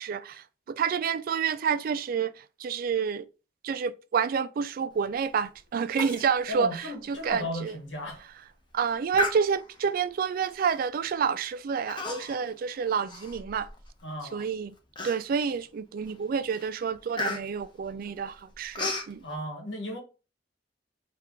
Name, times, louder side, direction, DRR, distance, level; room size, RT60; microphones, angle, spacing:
voice 1, 0.0-2.3 2.6-3.2 3.6-7.7 8.7-13.7 14.3-14.7 15.0-19.2, right 6 dB, 50° right, 0.3 m, -29 dB
Human voice, 6.0-6.3 6.6-6.7 7.2-7.3 7.9-8.2 9.1-9.9 10.6-10.8 11.9-12.5 12.9-13.9 14.4-14.5 15.0-15.5 16.0-16.2 16.5-19.1, left 2 dB, 25° left, 0.8 m, -34 dB
voice 2, 6.5-8.2 14.0-14.4 19.2-20.0, left 1 dB, 75° left, 1.4 m, -35 dB
4.4 x 2.5 x 3.6 m
head